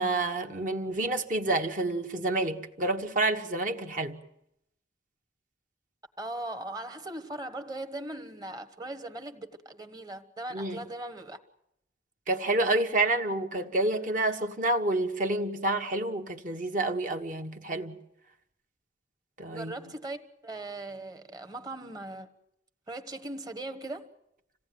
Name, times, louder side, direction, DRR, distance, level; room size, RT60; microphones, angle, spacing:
voice 1, 0.0-4.2 10.5-10.8 12.3-18.0 19.4-19.7, right 2 dB, 45° right, 1.5 m, -28 dB
voice 2, 6.2-11.4 19.5-22.3 22.9-24.1, right 2 dB, 20° right, 1.3 m, -39 dB
27.0 x 17.5 x 9.5 m
head